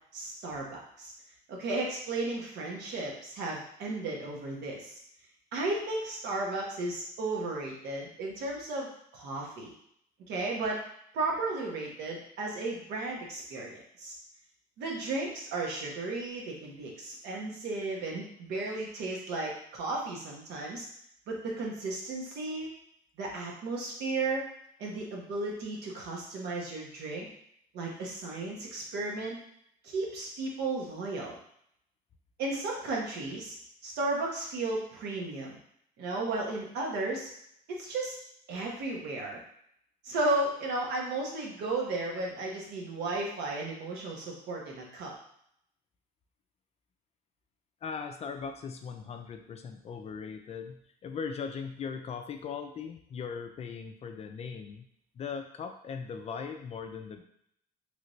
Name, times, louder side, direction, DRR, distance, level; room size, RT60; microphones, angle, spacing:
voice 1, 0.1-1.1 1.5-5.0 5.5-9.7 10.3-10.8 11.1-14.1 14.8-20.9 21.3-22.7 23.2-24.5 24.8-27.3 27.7-29.4 29.8-31.4 32.4-33.5 33.8-35.6 36.0-37.3 37.7-38.1 38.5-39.4 40.0-45.1, right 2 dB, 80° right, -1 dB, 1.0 m, -34 dB
voice 2, 47.8-54.9 55.2-57.2, left 6 dB, 40° left, 6 dB, 0.4 m, -39 dB
3.3 x 2.7 x 3.1 m, 0.69 s
cardioid pair, 110°, 17 cm